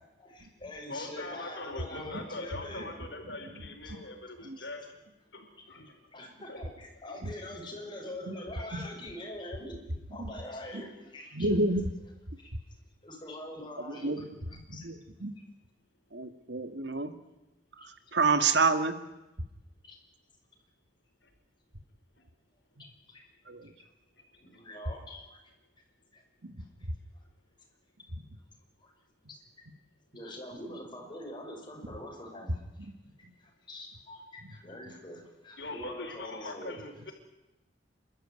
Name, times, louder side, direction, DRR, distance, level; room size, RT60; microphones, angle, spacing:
voice 1, 0.2-2.9 3.8-4.7 6.1-9.8 10.1-11.5 13.0-14.9 17.8-17.9 19.8-20.0 23.1-23.2 24.4-25.4 26.1-26.2 26.8-26.9 27.1-27.2 28.8-28.9 29.3-29.4 30.1-32.9 33.4-36.8, left 1 dB, 30° left, 0 dB, 6.3 m, -44 dB
voice 2, 0.9-4.8 5.3-5.4 5.7-5.9 6.5-6.6 35.6-37.1, left 2 dB, 85° left, 4 dB, 4.4 m, -41 dB
voice 3, 11.3-11.9 14.0-14.2 14.8-15.3 16.1-17.1 18.1-19.0, right 3 dB, 85° right, 10 dB, 1.7 m, -27 dB
28.5 x 13.0 x 9.8 m, 1.0 s
head